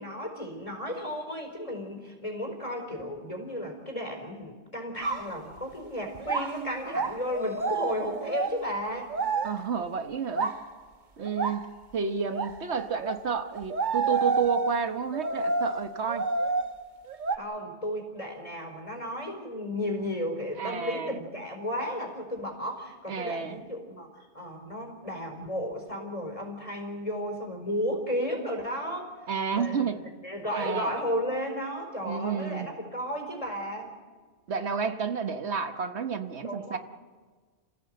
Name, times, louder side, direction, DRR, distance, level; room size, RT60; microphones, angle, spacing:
voice 1, 0.0-9.1 17.3-24.1 24.3-29.1 29.5-29.9 30.2-33.9 35.3-35.4 36.4-36.8, equal, 30° left, 3 dB, 4.6 m, -34 dB
sound 1, 5.0-5.4 6.1-9.7 10.3-10.7 11.2-11.7 12.3-13.2 13.5-17.4, right 4 dB, 45° right, 1.1 m, -30 dB
voice 2, 9.4-10.5 11.2-16.3 20.6-21.2 23.1-23.6 29.3-30.0 30.5-30.9 32.0-32.7 34.5-36.8, right 6 dB, 75° right, 8 dB, 1.4 m, -31 dB
29.5 x 16.0 x 7.8 m, 1.5 s
omnidirectional pair, 1.1 m